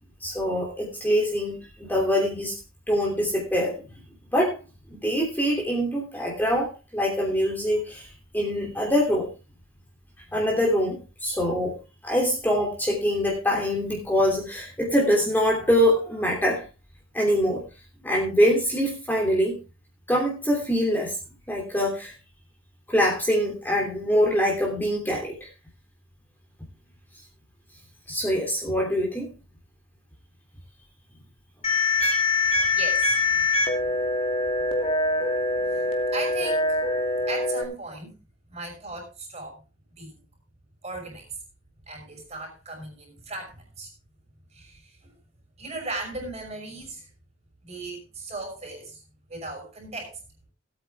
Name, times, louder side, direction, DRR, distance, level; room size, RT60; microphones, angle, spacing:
voice 1, 0.2-2.5 2.9-3.8 4.3-4.6 4.9-9.3 10.3-11.8 12.0-16.6 17.1-17.6 18.0-19.6 20.1-21.2 21.5-22.1 22.9-25.5 28.1-29.3 32.0-32.2, equal, 10° left, -1 dB, 3.0 m, -24 dB
sound 1, 31.6-37.6, left 2 dB, 30° left, 2.5 m, -24 dB
voice 2, 32.7-33.5 33.8-33.9 36.1-36.8 37.3-38.2 38.5-39.6 40.0-40.2 40.8-41.3 41.9-43.9 44.5-45.2 45.6-47.1 47.6-49.0 49.3-50.2, right 2 dB, 30° right, 3 dB, 5.8 m, -37 dB
18.0 x 8.9 x 3.5 m, 0.29 s
head